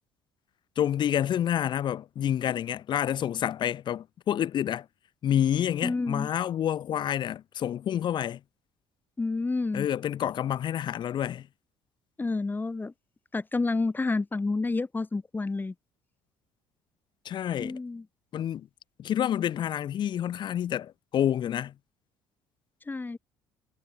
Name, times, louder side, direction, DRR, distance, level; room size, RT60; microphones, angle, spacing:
voice 1, 0.8-4.9 5.2-8.4 9.7-11.5 17.2-17.8 18.3-18.7 19.0-21.7, left 10 dB, 55° left, 2.7 m, -28 dB
voice 2, 5.8-6.3 9.2-9.9 12.2-12.9 13.3-15.7 17.6-18.0 22.9-23.2, left 3 dB, 20° left, 5.9 m, -29 dB
supercardioid pair, 85°, 9 cm